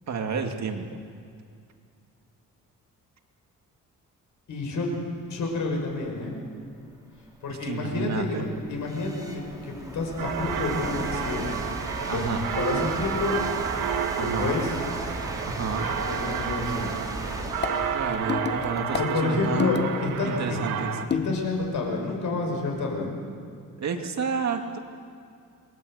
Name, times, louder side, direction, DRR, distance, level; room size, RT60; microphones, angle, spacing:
voice 1, 0.1-1.0 7.5-8.5 12.1-12.4 14.2-14.6 15.5-15.9 17.9-19.7 20.2-21.0 23.8-24.8, right 5 dB, 55° right, 4 dB, 2.2 m, -30 dB
voice 2, 4.5-4.9 5.3-6.3 7.4-11.5 12.1-12.3 12.6-13.4 14.2-14.8 16.0-16.9 18.9-20.6 21.1-23.1, left 3 dB, 65° left, 1 dB, 6.2 m, -29 dB
sound 1, 6.5-6.6 7.2-21.9, right 1 dB, 10° right, 3.1 m, -37 dB
sound 2, 10.2-21.1, right 8 dB, 75° right, 1.6 m, -31 dB
sound 3, 17.4-20.1 21.1-21.6, left 6 dB, 30° left, 0.8 m, -31 dB
27.5 x 20.5 x 8.0 m, 2.3 s
cardioid pair, 135°, 33 cm